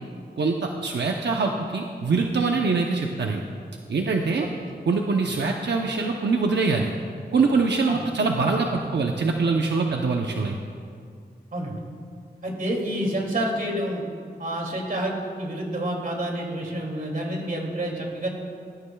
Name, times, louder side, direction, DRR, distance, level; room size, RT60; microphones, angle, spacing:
voice 1, 0.4-3.4 3.9-4.5 4.9-6.9 7.3-10.6, right 4 dB, 85° right, 1 dB, 0.8 m, -23 dB
voice 2, 12.4-14.0 14.4-18.3, right 1 dB, 55° right, -1 dB, 2.6 m, -28 dB
20.0 x 13.0 x 2.3 m, 2.2 s
wide cardioid pair, 85°, 17 cm